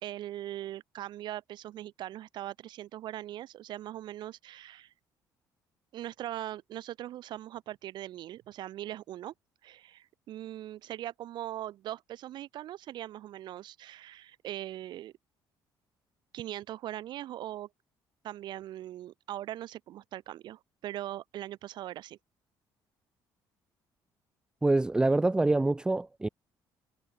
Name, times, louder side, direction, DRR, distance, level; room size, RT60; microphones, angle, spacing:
voice 1, 0.0-4.9 5.9-9.3 9.6-15.1 16.3-17.7 18.2-22.2, right 13 dB, 65° right, 2.1 m, -40 dB
voice 2, 24.6-26.3, right 2 dB, 10° right, 0.7 m, -25 dB
cardioid pair, 130°, 8 cm